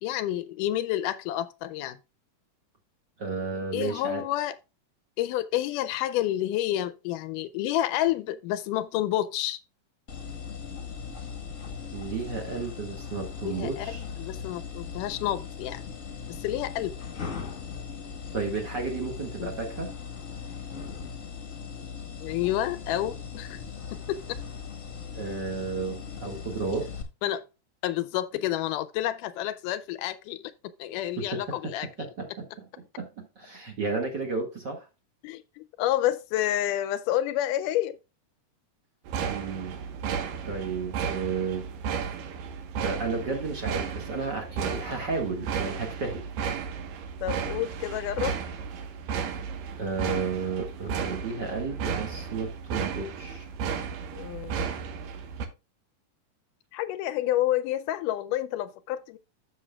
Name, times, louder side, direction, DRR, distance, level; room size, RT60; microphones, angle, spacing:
voice 1, 0.0-2.0 3.7-4.5 5.2-9.6 13.4-15.8 16.3-17.0 19.4-19.5 22.2-23.6 23.9-24.4 27.2-27.4 27.8-31.9 35.2-38.0 47.2-48.4 54.1-54.5 56.7-59.2, left 13 dB, 80° left, 2.1 m, -29 dB
voice 2, 3.2-4.2 11.9-14.0 18.3-19.9 25.1-26.9 31.2-31.7 32.0-34.9 39.2-39.8 40.5-41.7 42.8-46.3 49.8-53.5, right 4 dB, 40° right, 1.9 m, -33 dB
sound 1, 10.1-27.0, left 6 dB, 35° left, 1.2 m, -39 dB
sound 2, 39.1-55.5, right 6 dB, 80° right, 2.8 m, -34 dB
13.5 x 6.3 x 2.3 m
omnidirectional pair, 3.8 m